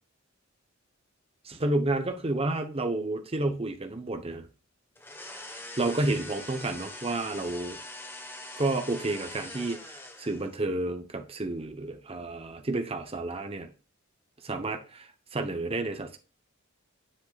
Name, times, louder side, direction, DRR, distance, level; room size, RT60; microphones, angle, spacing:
voice 1, 1.4-4.5 5.8-7.8 8.6-13.7 14.4-16.2, right 2 dB, 30° right, 0.9 m, -30 dB
sound 1, 5.0-10.6, left 2 dB, 10° left, 1.2 m, -43 dB
7.6 x 6.9 x 2.4 m
head